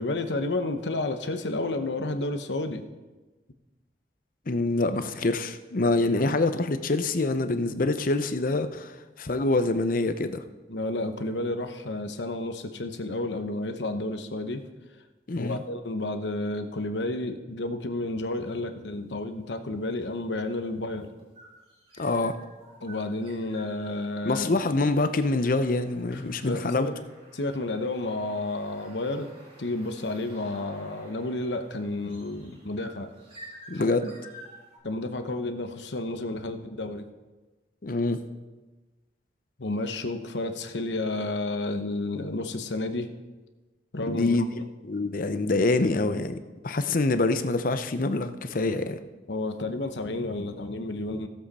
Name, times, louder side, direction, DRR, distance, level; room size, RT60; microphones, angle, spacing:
voice 1, 0.0-2.8 10.7-14.6 15.4-21.1 22.8-24.5 26.1-26.9 27.3-29.3 29.6-33.1 33.7-33.9 34.8-37.1 39.6-43.1 43.9-44.4 49.3-51.3, left 2 dB, 90° left, 7 dB, 1.0 m, -31 dB
voice 2, 4.5-10.4 15.3-15.6 22.0-22.4 24.2-26.9 33.7-34.2 37.8-38.3 44.1-44.5 44.8-46.4 46.6-49.0, left 2 dB, 50° left, 10 dB, 0.7 m, -25 dB
sound 1, 18.5-18.9 20.0-34.8, right 1 dB, 35° right, 2.9 m, -52 dB
17.0 x 7.7 x 4.2 m, 1.2 s
head